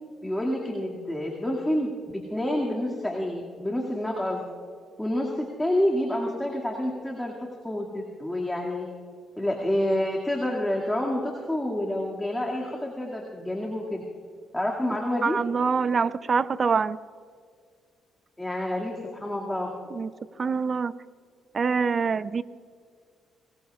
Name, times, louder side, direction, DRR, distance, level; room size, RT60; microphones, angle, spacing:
voice 1, 0.2-4.4 5.0-8.9 9.4-14.0 14.5-15.4 18.4-19.8, left 1 dB, 10° left, 2.3 m, -28 dB
voice 2, 15.2-17.0 19.9-20.1 20.4-20.9 21.5-22.4, right 5 dB, 40° right, 0.5 m, -25 dB
25.5 x 20.5 x 2.5 m
cardioid pair, 90°, 0 cm